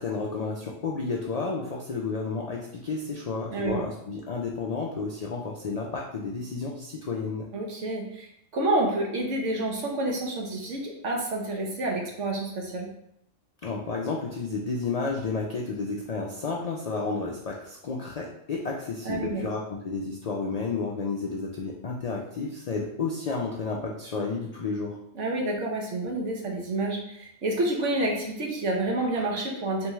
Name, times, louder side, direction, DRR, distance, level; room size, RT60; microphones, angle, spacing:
voice 1, 0.0-7.5 13.6-25.0, left 4 dB, 85° left, -1 dB, 0.3 m, -31 dB
voice 2, 3.5-3.8 7.5-12.9 19.0-19.4 25.1-29.9, right 2 dB, 70° right, 0 dB, 1.2 m, -29 dB
3.4 x 3.1 x 3.4 m, 0.76 s
omnidirectional pair, 1.3 m